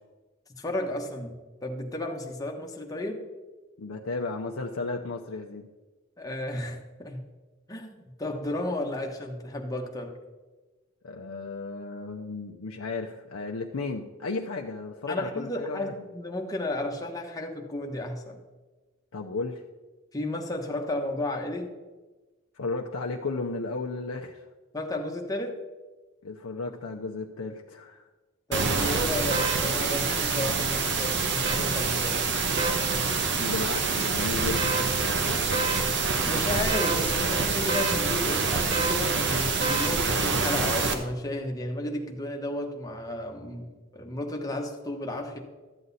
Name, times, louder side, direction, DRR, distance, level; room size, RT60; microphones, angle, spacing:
voice 1, 0.6-3.2 6.2-7.2 7.7-7.9 8.2-10.1 15.1-18.4 20.1-21.7 24.7-25.6 28.5-32.3 36.2-45.4, left 1 dB, 15° left, 1 dB, 1.2 m, -33 dB
voice 2, 3.8-5.7 11.0-15.9 19.1-19.6 22.5-24.5 26.2-28.0 33.4-34.8, left 3 dB, 85° left, 1 dB, 0.7 m, -34 dB
sound 1, 28.5-40.9, right 4 dB, 60° right, 1.0 m, -26 dB
12.5 x 7.9 x 4.1 m, 1.2 s
head